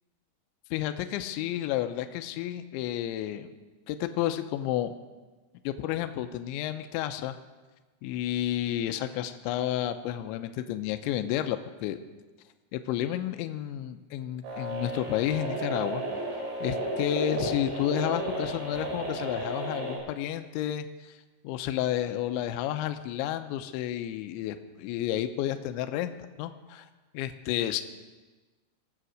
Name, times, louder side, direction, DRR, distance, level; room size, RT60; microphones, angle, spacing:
voice 1, 0.7-3.5 3.9-4.9 5.6-7.3 8.0-12.0 12.7-16.0 16.3-21.1 21.4-26.9 27.1-27.8, left 12 dB, 85° left, 8 dB, 2.8 m, -31 dB
sound 1, 14.4-20.0, right 1 dB, 75° right, 6.5 m, -33 dB
22.0 x 7.9 x 6.4 m, 1.3 s
omnidirectional pair, 5.8 m